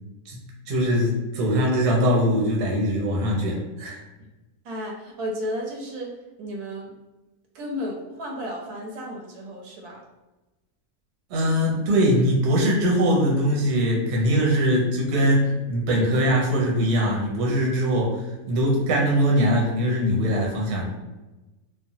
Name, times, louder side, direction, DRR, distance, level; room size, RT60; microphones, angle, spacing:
voice 1, 0.7-4.0 11.3-20.9, equal, 55° right, -2 dB, 0.8 m, -22 dB
voice 2, 4.6-6.1 6.4-6.9 7.5-10.0, equal, 80° right, 0 dB, 1.1 m, -33 dB
3.2 x 2.1 x 2.7 m, 1.1 s
omnidirectional pair, 1.6 m